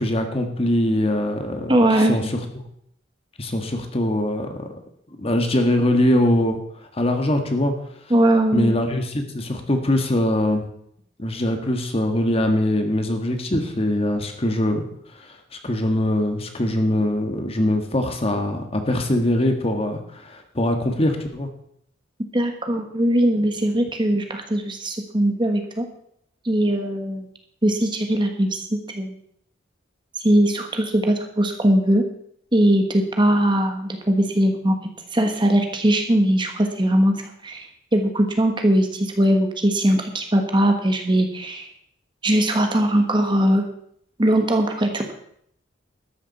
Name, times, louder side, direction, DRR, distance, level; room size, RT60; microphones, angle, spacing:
voice 1, 0.0-2.2 3.4-4.7 5.2-6.6 6.9-7.7 8.5-10.7 11.2-14.8 15.1-15.4 15.6-21.5, left 1 dB, 30° left, 5 dB, 1.6 m, -22 dB
voice 2, 1.7-2.2 8.1-8.7 22.3-25.9 26.4-27.3 27.6-28.6 28.9-29.1 30.2-32.0 32.5-34.8 35.1-37.1 37.4-41.7 42.2-43.6 44.2-45.1, right 1 dB, 25° right, 4 dB, 1.4 m, -20 dB
13.0 x 7.3 x 7.1 m, 0.70 s
head